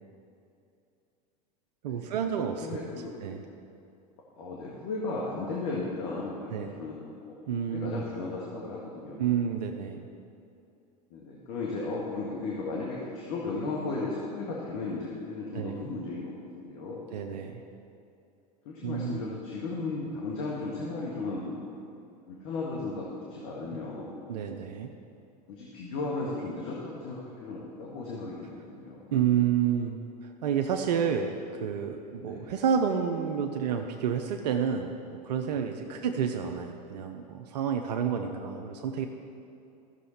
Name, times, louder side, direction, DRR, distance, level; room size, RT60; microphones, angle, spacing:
voice 1, 1.8-2.8 3.2-3.4 6.5-6.7 7.5-8.0 9.2-10.1 15.5-15.8 17.1-17.6 18.8-19.2 24.3-24.9 29.1-30.0 30.2-39.1, right 8 dB, 80° right, 4 dB, 0.7 m, -29 dB
voice 2, 2.6-3.1 4.4-7.4 7.7-9.3 11.1-17.1 18.7-21.6 22.3-24.2 25.5-29.1 32.2-32.5 35.9-36.1 38.2-38.5, left 3 dB, 65° left, -4 dB, 1.7 m, -35 dB
14.0 x 6.6 x 4.2 m, 2.6 s
hypercardioid pair, 90°, 21 cm